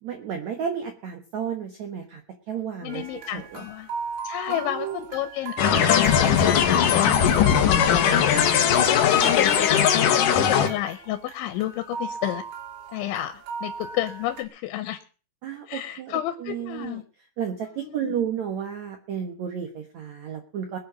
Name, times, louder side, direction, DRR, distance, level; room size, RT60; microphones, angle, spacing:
voice 1, 0.0-2.2 2.5-3.1 3.3-3.6 4.5-5.1 7.0-7.9 8.8-8.9 9.2-9.3 15.4-17.0 17.4-20.8, right 8 dB, 65° right, 5 dB, 1.8 m, -33 dB
voice 2, 2.8-3.9 4.2-8.4 8.9-12.4 12.9-15.0 15.7-17.0 17.8-18.2, left 13 dB, 90° left, 9 dB, 3.3 m, -30 dB
sound 1, 2.9-8.6 8.9-14.4, right 4 dB, 80° right, 4.7 m, -38 dB
sound 2, 5.6-10.7, left 8 dB, 60° left, 2.4 m, -19 dB
21.5 x 7.9 x 6.2 m, 0.39 s
omnidirectional pair, 5.2 m